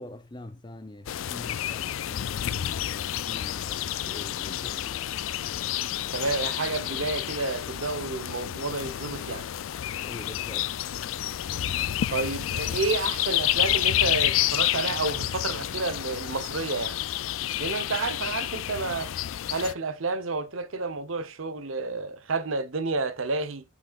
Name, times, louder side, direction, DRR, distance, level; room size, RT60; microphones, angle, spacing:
voice 1, 0.0-4.9 10.0-10.7, left 1 dB, 20° left, 0.7 m, -44 dB
sound 1, 1.1-19.7, left 12 dB, 85° left, 0.4 m, -29 dB
voice 2, 6.1-9.5 12.1-17.0 17.6-19.1 19.5-23.6, right 3 dB, 85° right, 0.9 m, -30 dB
8.2 x 5.4 x 2.4 m
head